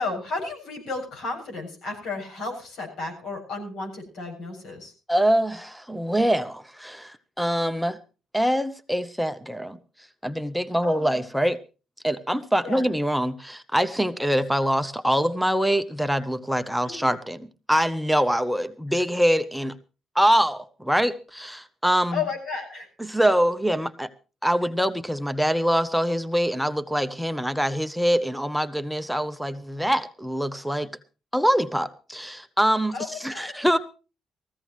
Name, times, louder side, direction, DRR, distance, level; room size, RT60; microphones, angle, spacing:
voice 1, 0.0-4.9 10.8-11.2 12.6-12.8 16.8-17.1 22.1-22.9 32.9-33.5, left 4 dB, 80° left, 1 dB, 7.2 m, -33 dB
voice 2, 5.1-8.0 8.3-9.8 10.2-11.6 12.0-19.8 20.1-22.2 23.0-24.1 24.4-30.9 31.3-33.8, equal, ahead, 9 dB, 0.8 m, -24 dB
19.5 x 15.0 x 3.1 m, 0.33 s
cardioid pair, 90°, 0 cm